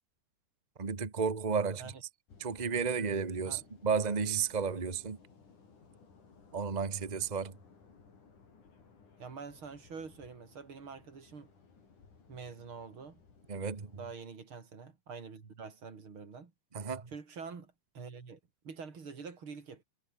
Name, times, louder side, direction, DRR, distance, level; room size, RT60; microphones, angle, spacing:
voice 1, 0.8-1.8 2.4-5.2 6.5-7.5 13.5-13.9 16.7-17.1, right 5 dB, 70° right, 0.4 m, -32 dB
sound 1, 2.3-14.1, left 5 dB, 70° left, 6.3 m, -60 dB
voice 2, 9.2-11.5 12.3-13.2 14.0-16.5 17.1-18.4 18.6-19.8, right 5 dB, 40° right, 3.7 m, -46 dB
omnidirectional pair, 3.6 m